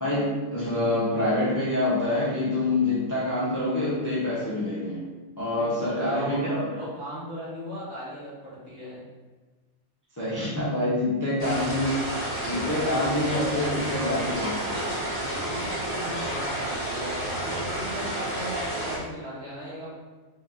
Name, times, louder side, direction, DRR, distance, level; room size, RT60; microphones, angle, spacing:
voice 1, 0.0-5.1 5.4-6.7 10.2-12.0 12.5-14.8, left 1 dB, 15° left, -8 dB, 0.7 m, -26 dB
voice 2, 5.6-6.5 6.8-9.0 15.1-19.9, equal, 50° right, -8 dB, 1.7 m, -38 dB
sound 1, 11.4-19.0, right 1 dB, 30° right, 0.9 m, -30 dB
3.9 x 2.9 x 3.8 m, 1.3 s
omnidirectional pair, 1.5 m